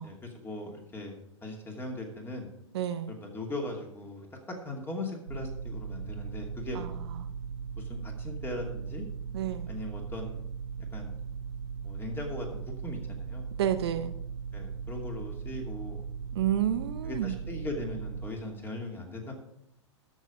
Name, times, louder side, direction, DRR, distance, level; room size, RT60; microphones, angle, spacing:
voice 1, 0.0-2.5 3.1-4.3 4.6-7.0 7.8-9.0 9.7-10.5 10.9-11.2 11.8-13.5 14.5-16.0 17.0-19.3, left 2 dB, 15° left, 1 dB, 2.6 m, -39 dB
voice 2, 2.7-3.1 6.7-7.2 9.3-9.7 13.6-14.2 16.3-17.3, right 10 dB, 60° right, 9 dB, 0.8 m, -30 dB
sound 1, 5.3-18.3, right 6 dB, 85° right, 0.4 m, -38 dB
13.5 x 6.5 x 4.9 m, 0.80 s
figure-of-eight pair, 105°, 16 cm